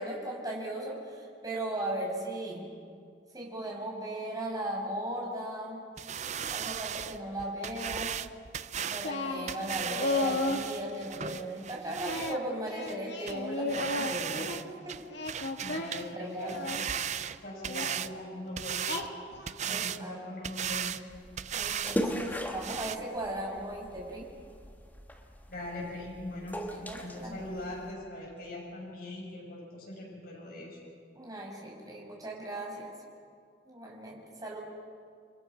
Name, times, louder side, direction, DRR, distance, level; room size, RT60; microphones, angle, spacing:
voice 1, 0.0-2.7 3.3-5.8 6.5-8.1 8.9-14.5 14.8-15.0 16.2-16.8 19.7-20.2 21.5-24.3 26.7-27.4 31.1-32.9 33.7-34.6, right 1 dB, 20° right, -2 dB, 5.9 m, -37 dB
sound 1, 6.0-12.4 12.9-13.0 13.3-13.4 13.7-14.6 14.9-16.1 16.4-18.1 18.6-19.1 19.5-20.0 20.4-21.0 21.4-22.0 22.2-22.3 22.6-23.0, right 8 dB, 40° right, 0.6 m, -36 dB
Singing, 9.0-10.7 12.1-14.6 15.1-16.9 17.7-17.9 18.9-19.5, left 2 dB, 75° left, 2.5 m, -34 dB
voice 2, 15.6-16.7 17.4-19.0 19.6-21.1 25.5-30.8, left 1 dB, 55° left, -3 dB, 7.1 m, -41 dB
sound 2, 21.1-27.9, equal, 10° left, 1.8 m, -39 dB
30.0 x 24.0 x 6.2 m, 2.2 s
head